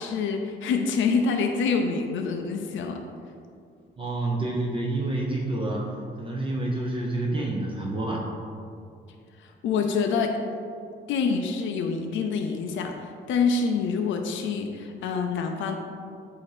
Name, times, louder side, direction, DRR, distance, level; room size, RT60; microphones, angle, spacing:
voice 1, 0.0-3.0 9.4-10.4 11.1-15.8, left 5 dB, 75° left, 4 dB, 0.6 m, -26 dB
voice 2, 4.0-8.3, right 2 dB, 25° right, -3 dB, 0.9 m, -28 dB
8.3 x 2.8 x 5.0 m, 2.4 s
cardioid pair, 90°, 20 cm